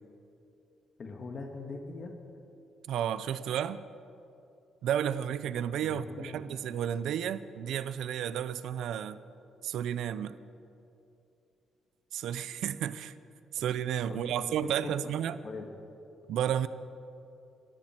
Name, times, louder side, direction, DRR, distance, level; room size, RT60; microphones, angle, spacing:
voice 1, 1.0-2.1 5.8-6.7 14.1-15.1 15.4-15.7, left 3 dB, 45° left, 3 dB, 1.7 m, -42 dB
voice 2, 2.9-3.8 4.8-9.2 9.6-10.3 12.1-13.1 13.5-15.4 16.3-16.7, right 9 dB, 80° right, 15 dB, 0.6 m, -32 dB
23.0 x 13.5 x 4.5 m, 2.8 s
cardioid pair, 90°, 0 cm